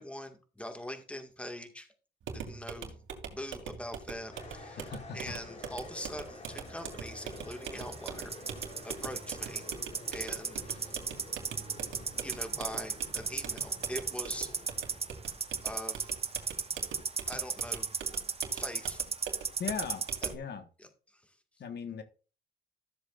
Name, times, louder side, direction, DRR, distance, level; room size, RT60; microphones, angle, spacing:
voice 1, 0.0-1.9 2.3-3.0 3.3-9.7 10.1-10.9 12.2-14.6 15.6-16.1 17.3-17.9 18.5-19.0 20.8-21.4, left 1 dB, 5° left, 6 dB, 1.9 m, -43 dB
sound 1, 2.2-20.5, right 7 dB, 75° right, 2.6 m, -44 dB
sound 2, 4.3-16.6, left 2 dB, 35° left, 3.6 m, -50 dB
voice 2, 4.8-5.3 19.6-20.0 20.3-20.7 21.6-22.0, left 7 dB, 55° left, 8 dB, 1.5 m, -38 dB
sound 3, 6.9-20.4, right 5 dB, 30° right, 1.0 m, -35 dB
14.0 x 7.5 x 2.5 m, 0.36 s
cardioid pair, 90°, 20 cm